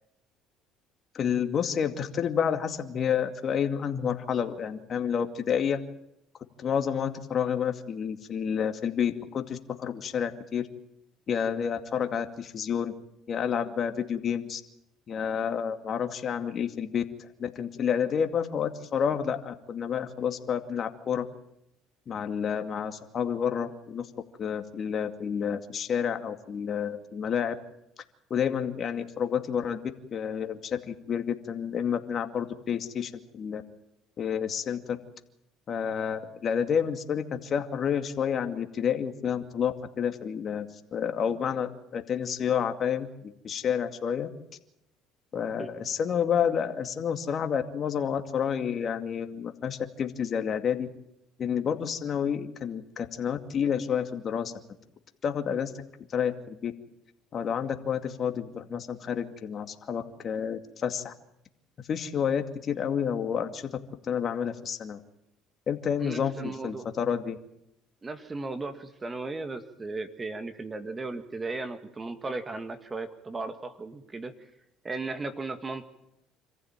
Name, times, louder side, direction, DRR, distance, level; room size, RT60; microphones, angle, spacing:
voice 1, 1.1-5.8 6.6-10.7 11.3-12.9 13.3-14.6 15.1-17.0 17.4-21.3 22.1-24.1 24.4-27.5 28.3-29.8 30.1-33.6 34.2-35.0 35.7-44.3 45.3-50.9 51.4-54.5 55.2-55.7 56.1-56.7 57.3-61.1 61.9-63.7 64.0-65.0 65.7-67.4, left 7 dB, 45° left, 7 dB, 2.3 m, -29 dB
voice 2, 66.0-66.9 68.0-74.3 74.8-75.8, right 3 dB, 25° right, 8 dB, 2.0 m, -36 dB
26.5 x 15.0 x 9.0 m, 0.82 s
supercardioid pair, 85°, 0 cm